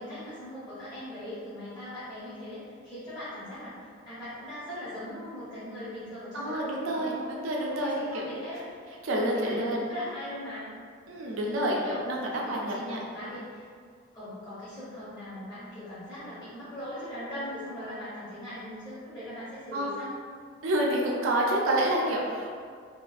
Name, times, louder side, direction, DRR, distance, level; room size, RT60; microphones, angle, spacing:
voice 1, 0.0-7.3 7.6-10.7 11.3-12.0 12.3-13.7 14.1-20.1, left 1 dB, 20° left, -14 dB, 0.7 m, -40 dB
voice 2, 6.3-8.2 9.0-9.8 11.1-13.3 19.7-19.9 20.6-22.5, right 1 dB, 90° right, -2 dB, 0.5 m, -28 dB
2.7 x 2.4 x 2.3 m, 2.1 s
head